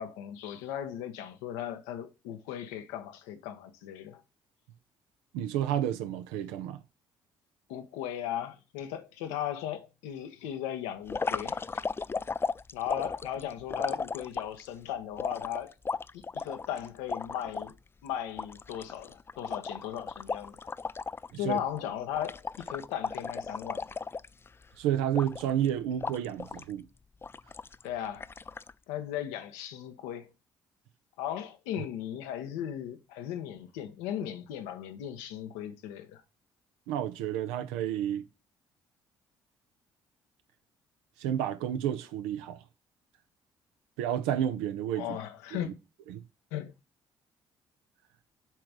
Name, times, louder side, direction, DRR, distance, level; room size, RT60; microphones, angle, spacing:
voice 1, 0.0-4.2 7.7-11.9 12.7-15.7 16.1-17.8 18.0-20.7 21.3-23.9 27.8-28.3 28.9-30.3 31.2-36.2 45.0-45.7 46.5-46.7, left 10 dB, 85° left, 0.9 m, -37 dB
voice 2, 5.3-6.8 21.3-21.6 24.8-26.9 36.9-38.2 41.2-42.6 44.0-45.2 45.5-45.7 46.1-46.2, right 10 dB, 85° right, 0.7 m, -31 dB
sound 1, 11.1-14.7 15.2-17.7 18.1-18.2 18.4-21.3 21.6-21.8 22.1-24.6 25.1-25.7 26.0-26.7 27.2-27.8 28.2-28.7, left 4 dB, 20° left, 0.3 m, -35 dB
7.6 x 3.4 x 5.0 m
hypercardioid pair, 60°, 11 cm